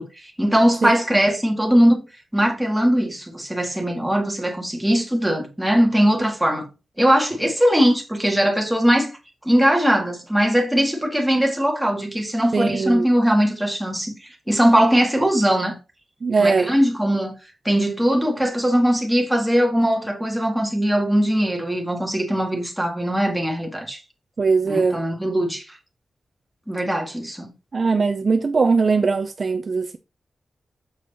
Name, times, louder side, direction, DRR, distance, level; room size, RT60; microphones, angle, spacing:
voice 1, 0.0-2.0 2.3-6.7 7.0-9.1 9.4-14.1 14.5-15.7 16.4-17.3 17.6-24.0 24.7-25.6 26.7-27.5, equal, 5° right, 1.8 m, -20 dB
voice 2, 12.5-13.1 16.2-16.7 24.4-25.0 27.7-30.0, right 4 dB, 45° right, 0.5 m, -20 dB
7.0 x 4.7 x 4.1 m
wide cardioid pair, 145°, 0 cm